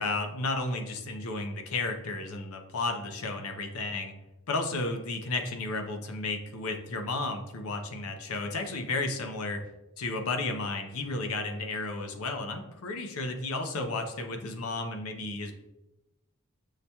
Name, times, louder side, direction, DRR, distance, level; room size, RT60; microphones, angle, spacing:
voice 1, 0.0-4.1 4.5-9.6 10.0-15.5, left 3 dB, 80° left, 5 dB, 0.5 m, -33 dB
6.4 x 2.2 x 2.8 m, 0.99 s
head